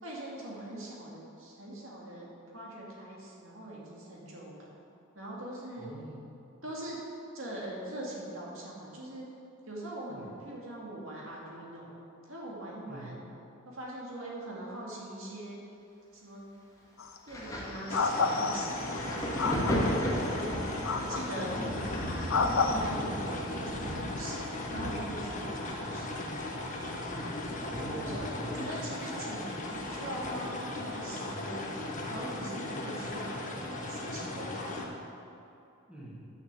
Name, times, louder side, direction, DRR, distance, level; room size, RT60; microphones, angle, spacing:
voice 1, 0.0-4.7 5.1-5.9 6.6-7.0 7.3-9.3 9.7-12.0 12.2-13.2 13.6-15.6 16.1-16.5 17.2-20.6 21.0-26.3 27.9-31.7 32.0-35.0, right 1 dB, 65° right, -4 dB, 2.5 m, -42 dB
voice 2, 5.8-6.4 10.1-10.3 12.9-13.1 23.1-23.3 27.0-27.4 27.7-29.2 35.9-36.2, right 1 dB, 5° right, -7 dB, 2.3 m, -44 dB
sound 1, 17.0-17.2 17.9-18.9 19.4-20.0 20.8-21.4 22.3-22.8, left 4 dB, 70° left, 0.8 m, -29 dB
Thunder, 17.3-30.6 30.9-32.2 33.1-33.2, equal, 15° left, 2.3 m, -37 dB
sound 2, 17.9-34.8, left 2 dB, 40° left, 1.2 m, -37 dB
11.5 x 6.6 x 7.6 m, 2.7 s
head